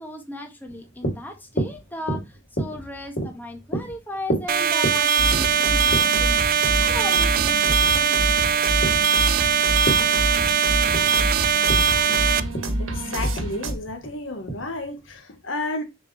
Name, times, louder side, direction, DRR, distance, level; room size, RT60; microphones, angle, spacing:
voice 1, 0.0-8.4, left 1 dB, 10° left, 1.6 m, -37 dB
sound 1, 0.7-15.2, right 1 dB, 55° left, 2.8 m, -32 dB
sound 2, 4.5-12.4, right 7 dB, 45° right, 0.4 m, -20 dB
sound 3, 5.2-13.7, right 1 dB, 85° right, 1.7 m, -28 dB
voice 2, 12.8-15.8, left 2 dB, 70° left, 1.4 m, -32 dB
6.5 x 5.4 x 3.3 m
head